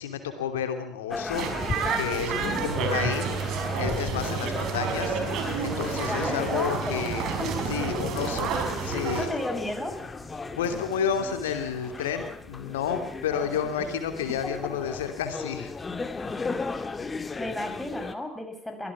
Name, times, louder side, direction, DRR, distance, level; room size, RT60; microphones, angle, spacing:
voice 1, 0.0-1.7 1.9-3.5 3.8-5.2 5.6-7.3 7.7-9.3 10.6-15.7, left 7 dB, 75° left, 7 dB, 2.8 m, -31 dB
sound 1, 1.1-18.1, left 4 dB, 25° left, 2.1 m, -36 dB
sound 2, 1.3-9.3, right 6 dB, 55° right, 4.3 m, -30 dB
sound 3, 2.7-14.9 15.3-15.5 17.7-17.8, right 6 dB, 80° right, 6.0 m, -40 dB
voice 2, 6.1-7.0 7.4-7.7 8.9-10.0 14.4-14.5 17.4-18.9, left 1 dB, 10° left, 4 dB, 6.1 m, -33 dB
24.0 x 17.0 x 7.2 m, 0.65 s
figure-of-eight pair, 55°, 0 cm